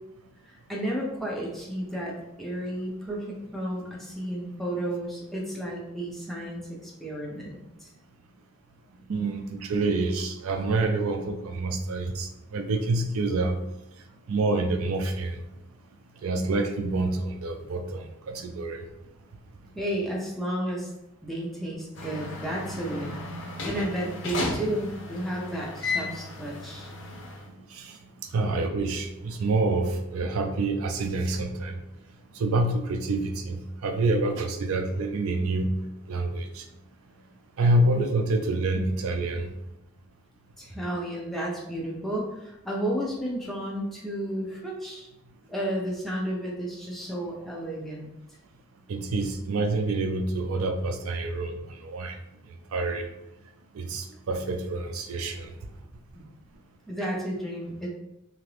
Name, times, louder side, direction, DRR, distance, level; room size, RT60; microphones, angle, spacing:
voice 1, 0.4-7.9 19.7-20.9 21.2-23.2 23.6-26.9 40.6-45.1 45.5-48.1 56.9-57.9, right 1 dB, ahead, -4 dB, 0.5 m, -32 dB
voice 2, 9.1-13.6 14.3-15.4 16.2-18.8 27.7-28.0 28.3-31.7 32.3-35.7 36.1-36.6 37.6-39.5 48.9-52.2 52.7-53.1 53.7-55.5, right 2 dB, 75° right, 5 dB, 0.4 m, -27 dB
sound 1, 22.0-27.5, left 3 dB, 55° left, 0.6 m, -34 dB
2.8 x 2.5 x 3.2 m, 0.92 s
head